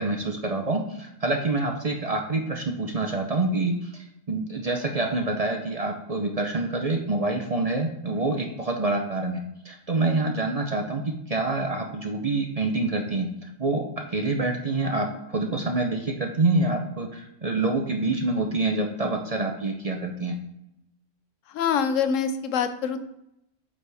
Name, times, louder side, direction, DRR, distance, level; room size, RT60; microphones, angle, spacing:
voice 1, 0.0-9.4 9.6-11.0 11.3-20.3, right 2 dB, 40° right, 3 dB, 0.6 m, -26 dB
voice 2, 21.5-23.0, left 7 dB, 85° left, 10 dB, 1.0 m, -25 dB
8.4 x 5.0 x 3.4 m, 0.81 s
omnidirectional pair, 1.3 m